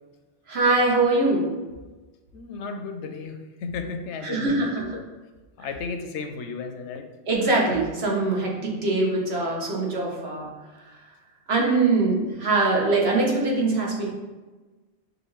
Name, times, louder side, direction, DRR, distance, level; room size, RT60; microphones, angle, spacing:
voice 1, 0.5-1.5 4.2-5.0 7.3-10.5 11.5-14.1, right 3 dB, 65° right, -2 dB, 1.2 m, -23 dB
voice 2, 2.3-5.0 5.6-7.1, left 4 dB, 85° left, 6 dB, 0.9 m, -34 dB
6.4 x 2.5 x 3.1 m, 1.2 s
omnidirectional pair, 1.1 m